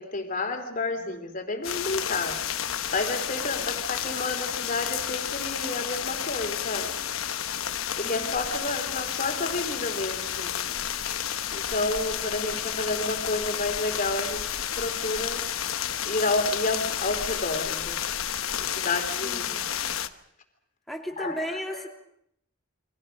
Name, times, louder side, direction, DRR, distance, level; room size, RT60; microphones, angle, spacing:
voice 1, 0.0-2.4 2.9-6.9 8.0-10.5 11.0-11.2 11.5-15.4 16.1-18.0 18.6-19.6 21.2-21.4 21.7-21.8, left 2 dB, 40° left, 5 dB, 3.3 m, -30 dB
sound 1, 1.6-20.1, left 9 dB, 80° left, 1.1 m, -31 dB
voice 2, 8.0-8.3 19.2-19.7 20.9-21.9, equal, ahead, 1 dB, 2.9 m, -35 dB
29.5 x 24.0 x 5.3 m, 0.71 s
head